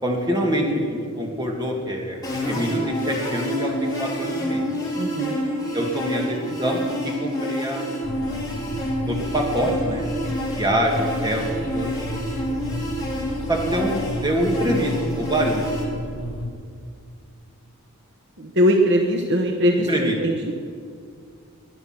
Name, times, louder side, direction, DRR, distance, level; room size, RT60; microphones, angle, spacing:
voice 1, 0.0-2.2 2.5-4.7 5.7-7.9 9.1-10.1 10.6-11.4 11.7-11.9 13.5-14.0 14.2-15.8 19.9-20.2, equal, 20° right, 0 dB, 2.2 m, -25 dB
sound 1, 2.2-15.8, equal, 15° left, 3.0 m, -28 dB
voice 2, 5.0-5.4 18.4-20.5, equal, 50° right, 3 dB, 1.0 m, -21 dB
sound 2, 8.0-16.5, left 1 dB, 60° left, 2.8 m, -32 dB
20.5 x 10.0 x 5.9 m, 2.2 s
head